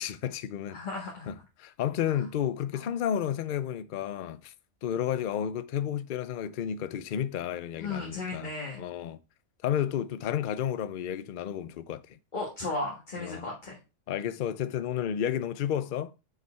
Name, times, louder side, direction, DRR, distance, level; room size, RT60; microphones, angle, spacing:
voice 1, 0.0-0.8 1.3-4.5 4.8-8.5 8.8-9.2 9.6-12.2 13.2-13.5 14.1-16.1, left 9 dB, 55° left, 0.6 m, -31 dB
voice 2, 0.7-1.3 2.7-2.8 7.8-8.8 12.3-13.8, left 3 dB, 40° left, 1.7 m, -35 dB
6.5 x 4.9 x 4.3 m
omnidirectional pair, 1.3 m